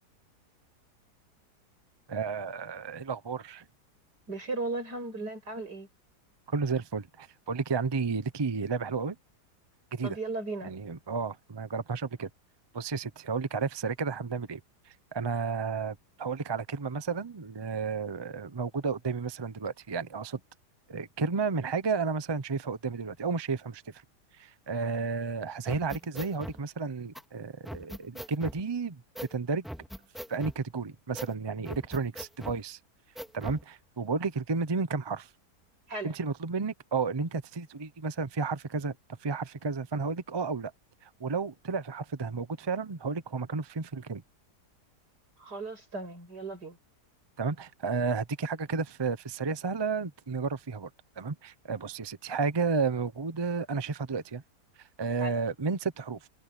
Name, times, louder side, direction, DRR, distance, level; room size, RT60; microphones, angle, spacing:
voice 1, 2.1-3.6 6.5-9.2 9.9-10.2 10.6-12.3 12.7-14.6 14.9-20.4 20.9-23.8 24.4-29.0 29.3-29.6 30.3-32.8 33.3-35.3 36.0-38.9 39.2-40.7 41.0-44.2 47.4-50.9 51.2-54.4 55.0-56.3, right 4 dB, 30° right, 0.5 m, -32 dB
voice 2, 4.3-5.9 10.0-10.7 35.9-36.1 45.4-46.8 55.2-55.3, right 2 dB, 80° right, 8.2 m, -36 dB
sound 1, 25.7-26.6 27.1-27.2 27.7-28.6 29.2-29.3 29.6-30.6 31.1-31.3 31.7-32.6 33.2-33.6, equal, ahead, 2.1 m, -40 dB
omnidirectional pair, 1.7 m